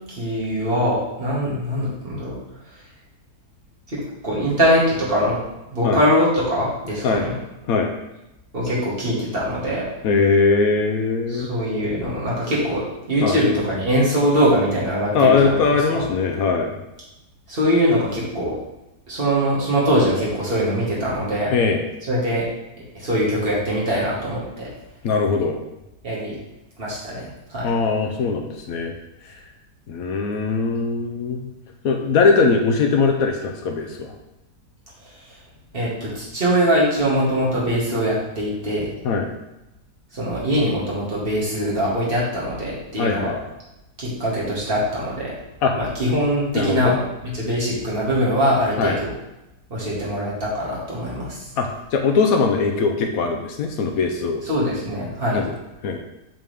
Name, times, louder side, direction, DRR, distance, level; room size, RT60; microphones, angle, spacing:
voice 1, 0.1-2.4 3.9-5.4 5.7-7.3 8.5-9.9 11.3-15.6 15.9-16.1 17.5-18.5 19.1-21.6 22.1-22.5 22.9-24.7 26.0-26.4 26.8-27.7 35.3-35.4 35.7-38.9 40.1-43.3 44.0-45.3 45.7-47.0 47.2-49.1 49.7-51.5 54.4-55.4, equal, 35° right, -6 dB, 2.0 m, -22 dB
voice 2, 10.0-11.5 13.2-13.4 15.1-16.7 21.5-21.8 25.0-25.6 27.6-28.9 29.9-31.4 31.8-34.1 39.0-39.3 43.0-43.4 45.6-45.7 46.5-47.0 48.8-49.0 51.6-54.4 55.3-55.5 55.8-56.0, left 4 dB, 70° left, 4 dB, 1.0 m, -20 dB
7.5 x 3.6 x 3.5 m, 0.94 s
omnidirectional pair, 1.7 m